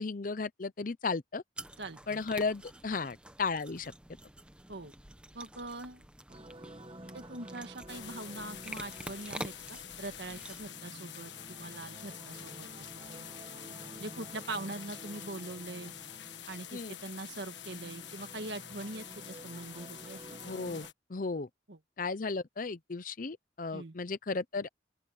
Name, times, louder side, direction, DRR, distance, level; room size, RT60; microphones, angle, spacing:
voice 1, 0.0-1.4 2.1-3.9 16.7-17.0 20.4-21.5 22.0-24.7, left 4 dB, 45° left, 0.7 m, -35 dB
sound 1, 1.6-10.7, right 1 dB, 5° right, 1.0 m, -48 dB
voice 2, 1.8-2.2 4.7-4.9 5.3-6.0 7.1-13.3 14.0-15.9 16.5-20.2 21.7-21.8 23.7-23.9, right 2 dB, 70° right, 1.7 m, -43 dB
sound 2, 6.3-20.9, right 1 dB, 30° right, 2.1 m, -51 dB
sound 3, 7.9-20.9, left 10 dB, 75° left, 1.4 m, -47 dB
open air
head